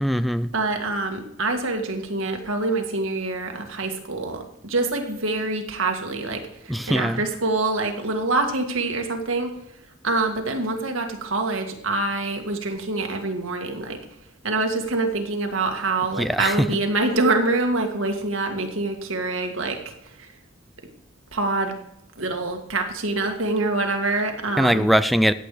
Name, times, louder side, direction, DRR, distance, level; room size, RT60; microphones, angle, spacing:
voice 1, 0.0-0.5 6.7-7.2 16.2-16.5 24.6-25.3, equal, ahead, 13 dB, 0.3 m, -21 dB
voice 2, 0.5-9.5 10.0-14.0 14.4-20.3 21.3-21.8 22.2-24.9, right 2 dB, 90° right, 4 dB, 2.0 m, -25 dB
14.5 x 8.4 x 4.9 m, 0.80 s
head